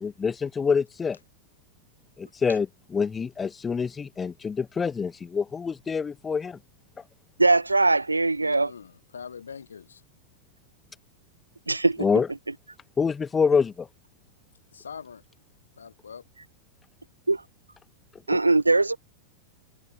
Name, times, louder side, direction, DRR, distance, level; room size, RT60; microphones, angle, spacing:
voice 1, 0.0-1.2 2.2-6.6 12.0-12.3 13.0-13.9, left 5 dB, 15° left, 0.7 m, -26 dB
voice 2, 7.4-8.7 11.7-12.1 17.3-17.4 18.3-19.0, right 3 dB, 80° right, 1.1 m, -21 dB
voice 3, 8.4-10.0 14.7-15.2 15.8-16.2, left 6 dB, 70° left, 6.2 m, -43 dB
figure-of-eight pair, 90°, 0 cm